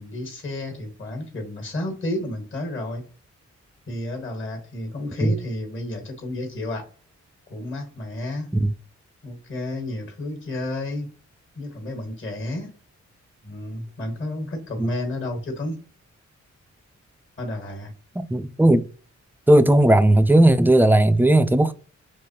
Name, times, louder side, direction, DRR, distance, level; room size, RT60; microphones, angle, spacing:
voice 1, 0.0-3.0 3.9-6.8 7.5-8.5 9.2-11.1 11.6-12.7 13.4-15.8 17.4-17.9, left 1 dB, 40° left, 1.5 m, -31 dB
voice 2, 18.2-18.9 19.5-21.7, right 1 dB, 5° right, 0.3 m, -16 dB
3.5 x 3.1 x 2.8 m
cardioid pair, 60°, 29 cm